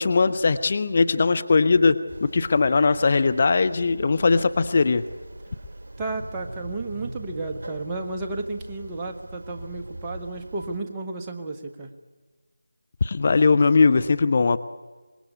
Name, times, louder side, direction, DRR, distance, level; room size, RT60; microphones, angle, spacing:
voice 1, 0.0-5.0 13.0-14.6, left 4 dB, 35° left, 13 dB, 0.8 m, -20 dB
sound 1, 2.1-10.8, right 1 dB, 55° right, 2.0 m, -41 dB
voice 2, 6.0-11.9, right 3 dB, 15° right, 1 dB, 1.5 m, -32 dB
25.0 x 21.0 x 8.4 m, 1.3 s
figure-of-eight pair, 160°, 0 cm